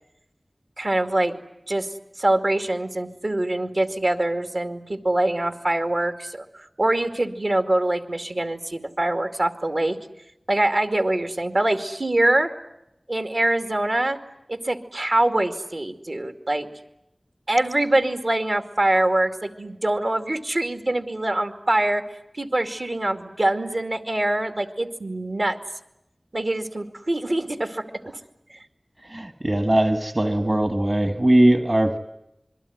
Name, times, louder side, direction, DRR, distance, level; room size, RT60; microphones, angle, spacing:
voice 1, 0.8-1.3 1.7-1.9 2.2-10.0 10.5-12.5 13.1-14.2 14.5-16.7 17.5-22.0 22.3-25.6 26.3-27.8 28.5-28.6, right 1 dB, 70° right, 7 dB, 2.5 m, -24 dB
voice 2, 29.1-32.0, right 1 dB, 40° right, 8 dB, 1.7 m, -20 dB
27.0 x 22.5 x 9.6 m, 0.84 s
wide cardioid pair, 45°, 0 cm